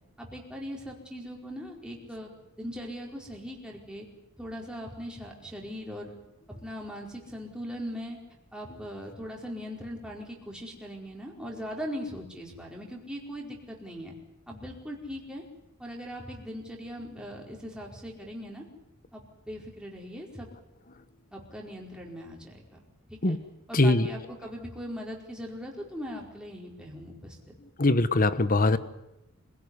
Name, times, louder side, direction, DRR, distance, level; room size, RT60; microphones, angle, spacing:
voice 1, 0.2-2.3 2.6-4.1 4.4-6.1 6.6-8.2 8.5-14.1 14.5-15.4 15.8-18.6 19.1-20.5 21.3-22.8 23.1-23.4 23.7-27.5, equal, 5° right, -1 dB, 4.7 m, -40 dB
voice 2, 23.7-24.1 27.8-28.8, left 2 dB, 40° left, 14 dB, 1.2 m, -22 dB
26.5 x 17.0 x 9.8 m, 0.91 s
head